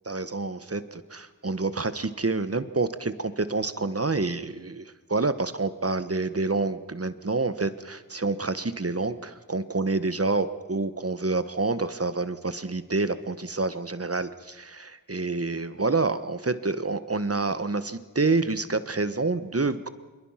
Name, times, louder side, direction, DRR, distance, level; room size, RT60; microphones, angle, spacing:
voice 1, 0.0-4.8 5.1-19.9, right 3 dB, 45° right, 12 dB, 1.3 m, -28 dB
26.0 x 22.5 x 5.8 m, 1.2 s
wide cardioid pair, 50°, 34 cm